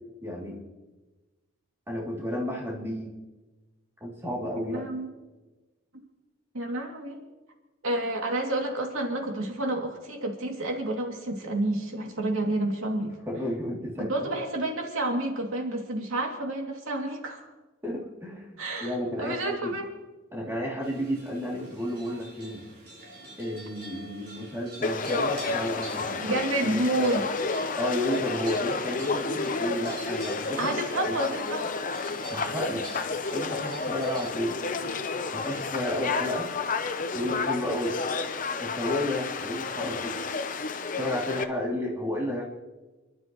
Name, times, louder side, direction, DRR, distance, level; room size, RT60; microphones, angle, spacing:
voice 1, 0.2-0.6 1.9-3.1 4.0-4.8 13.3-14.1 17.8-19.7 20.3-22.6 23.4-26.3 26.6-27.1 27.8-30.7 31.0-31.1 32.3-32.8 33.3-34.6 35.3-36.5 37.1-37.9 38.6-40.1 41.0-42.4, left 1 dB, 10° right, -4 dB, 2.9 m, -32 dB
voice 2, 4.6-5.1 6.5-7.2 7.8-13.2 14.1-17.5 18.6-19.8 26.2-27.2 30.6-31.7, right 1 dB, 85° right, 0 dB, 2.7 m, -29 dB
sound 1, 20.8-34.3, right 1 dB, 50° right, 5.0 m, -46 dB
Conversation / Crowd, 24.8-41.4, left 4 dB, 40° left, 0.8 m, -31 dB
30.0 x 12.0 x 3.1 m, 1.2 s
head